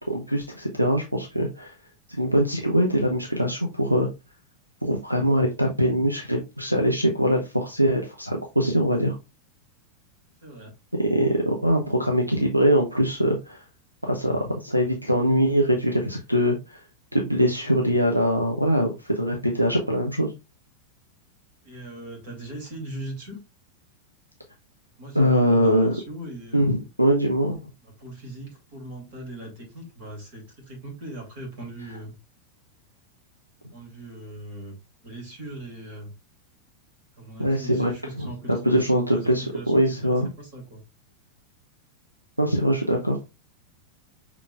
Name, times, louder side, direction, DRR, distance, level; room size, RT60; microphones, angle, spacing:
voice 1, 0.1-1.7 2.1-4.1 4.8-9.2 10.9-13.6 14.0-16.8 17.1-20.3 25.1-26.0 26.5-27.6 37.4-37.9 38.2-38.3 38.6-40.3 42.4-43.2, equal, 90° right, 2 dB, 0.6 m, -22 dB
voice 2, 10.4-10.7 21.6-23.4 25.0-26.7 27.8-32.2 33.7-34.8 35.0-36.1 37.2-40.8, right 1 dB, 55° right, 2 dB, 2.5 m, -39 dB
5.8 x 3.7 x 2.3 m, 0.26 s
figure-of-eight pair, 90°, 0 cm